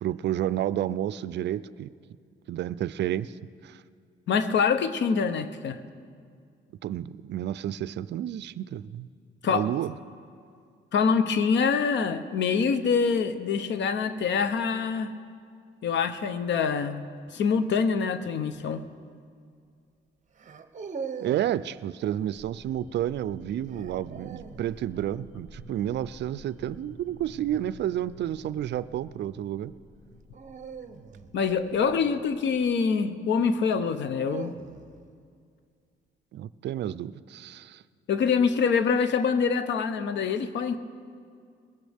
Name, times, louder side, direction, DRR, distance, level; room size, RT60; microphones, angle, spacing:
voice 1, 0.0-1.9 2.5-3.4 3.6-3.8 6.8-9.1 9.5-9.9 21.2-29.7 36.3-37.8, right 11 dB, 60° right, 17 dB, 0.4 m, -30 dB
voice 2, 4.3-5.8 9.4-9.7 10.9-15.1 15.8-17.0 17.3-18.8 31.3-34.6 38.1-40.8, left 6 dB, 65° left, 11 dB, 0.8 m, -25 dB
sound 1, 18.5-18.8 20.4-21.6 23.7-24.7 27.1-27.5 30.3-32.7 33.7-35.0, right 6 dB, 40° right, 0.8 m, -41 dB
sound 2, 22.3-32.8, left 1 dB, 85° left, 4.6 m, -50 dB
21.0 x 15.0 x 3.5 m, 2.2 s
cardioid pair, 90°, 20 cm